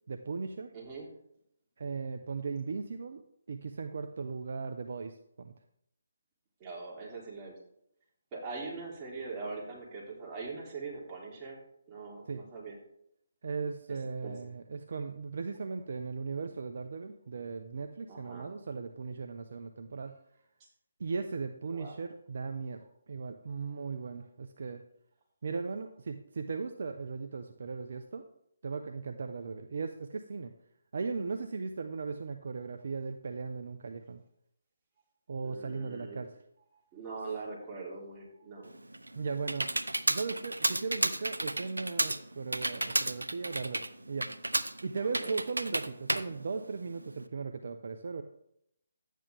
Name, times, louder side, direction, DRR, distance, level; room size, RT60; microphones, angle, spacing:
voice 1, 0.1-0.7 1.8-3.2 3.5-5.5 12.3-12.5 13.4-20.2 21.0-24.8 25.4-28.2 28.6-30.5 30.9-34.2 35.3-36.3 39.2-39.7 40.1-44.3 44.8-48.2, right 4 dB, 55° right, 7 dB, 0.7 m, -37 dB
voice 2, 0.7-1.1 6.6-7.6 8.3-11.6 11.9-12.8 14.2-14.3 18.1-18.5 21.7-22.0 35.4-36.2 36.9-38.7 45.0-45.3, right 4 dB, 20° right, -4 dB, 3.3 m, -42 dB
Computer keyboard, 38.7-47.2, right 1 dB, 90° right, 0.7 m, -33 dB
12.0 x 9.2 x 3.4 m, 0.76 s
figure-of-eight pair, 150°, 0 cm